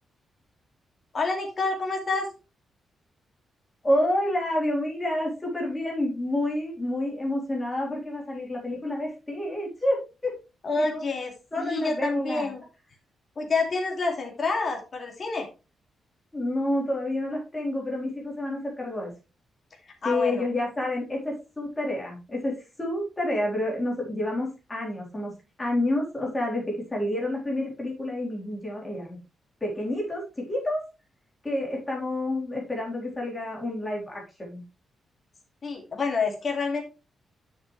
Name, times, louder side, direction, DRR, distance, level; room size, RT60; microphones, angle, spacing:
voice 1, 1.1-2.3 10.6-12.6 13.4-15.5 19.8-20.4 35.6-36.8, left 3 dB, 35° left, 1 dB, 2.5 m, -28 dB
voice 2, 3.8-10.0 10.2-10.3 10.8-11.1 11.5-12.5 16.3-19.1 20.0-25.3 25.6-29.2 29.6-30.8 31.4-34.6, left 1 dB, 15° left, -3 dB, 3.9 m, -29 dB
9.9 x 6.6 x 3.2 m, 0.29 s
wide cardioid pair, 160°, 0 cm